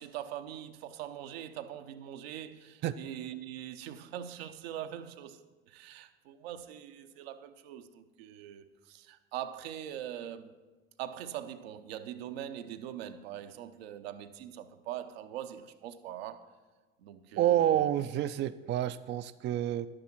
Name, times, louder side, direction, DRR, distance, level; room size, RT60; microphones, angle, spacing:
voice 1, 0.0-10.5 11.0-16.5 17.0-17.9, right 11 dB, 70° right, 0.7 m, -42 dB
voice 2, 17.4-19.9, right 12 dB, 35° right, 0.4 m, -28 dB
11.0 x 8.8 x 4.6 m
figure-of-eight pair, 60°, 32 cm